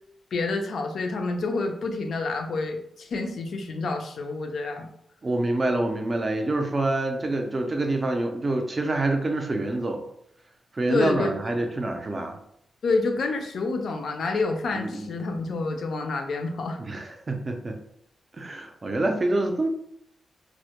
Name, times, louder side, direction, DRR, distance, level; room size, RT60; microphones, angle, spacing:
voice 1, 0.3-4.9 10.9-11.3 12.8-16.8, left 3 dB, 65° left, 4 dB, 0.4 m, -28 dB
voice 2, 5.2-10.0 10.7-12.4 14.7-15.1 16.8-17.8 18.3-19.7, right 2 dB, 25° right, 4 dB, 0.3 m, -26 dB
2.1 x 2.0 x 2.8 m, 0.70 s
wide cardioid pair, 155°, 0 cm